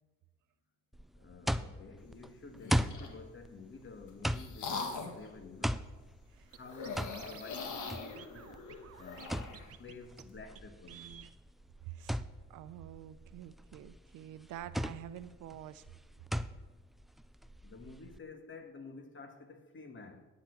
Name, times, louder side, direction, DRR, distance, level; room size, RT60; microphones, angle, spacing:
sound 1, 0.9-18.2, equal, ahead, 0.3 m, -39 dB
voice 1, 1.1-5.8 6.5-8.5 8.9-11.0 17.6-20.2, left 4 dB, 40° left, 1.5 m, -51 dB
sound 2, 2.6-3.2 3.8-5.3 6.6-9.7, left 4 dB, 75° left, 1.6 m, -42 dB
Scratching (performance technique), 6.5-6.6 6.8-7.6 7.8-7.9 8.2-9.3 9.5-9.9 10.2-10.3 10.6-10.7 10.9-11.3, right 10 dB, 50° right, 0.7 m, -51 dB
voice 2, 11.9-12.2 12.5-15.8, right 12 dB, 85° right, 0.6 m, -47 dB
10.0 x 6.0 x 7.9 m
cardioid pair, 90°, 30 cm